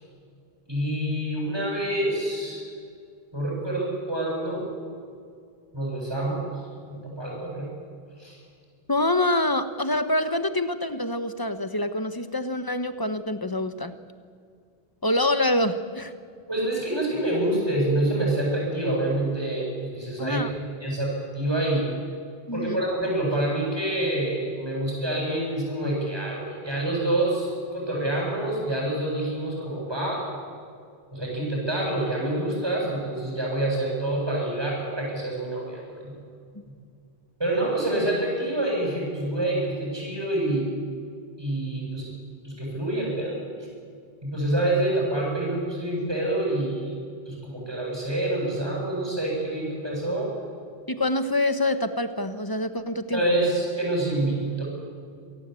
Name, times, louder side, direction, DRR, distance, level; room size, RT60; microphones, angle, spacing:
voice 1, 0.7-2.7 3.3-4.7 5.7-6.5 6.8-7.7 8.2-8.4 16.5-20.5 20.8-21.9 22.5-30.3 31.1-36.1 37.4-40.7 41.4-42.1 42.4-43.4 44.2-46.9 47.3-50.3 53.1-54.6, right 1 dB, 25° right, -4 dB, 8.0 m, -27 dB
voice 2, 8.9-13.9 15.0-16.1 20.2-20.5 22.5-22.8 36.5-36.6 50.9-53.2, left 1 dB, 20° left, 10 dB, 1.2 m, -26 dB
27.0 x 18.0 x 8.4 m, 2.2 s
omnidirectional pair, 1.1 m